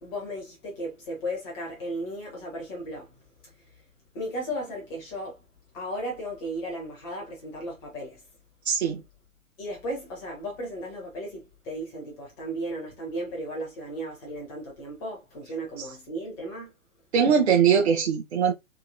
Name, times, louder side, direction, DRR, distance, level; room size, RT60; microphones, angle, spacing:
voice 1, 0.0-3.5 4.1-5.4 5.7-8.2 9.6-16.7, equal, 5° left, 0.4 m, -35 dB
voice 2, 8.6-9.0 17.1-18.5, right 7 dB, 50° right, 0.9 m, -21 dB
2.9 x 2.8 x 2.5 m
figure-of-eight pair, 115°, 40 cm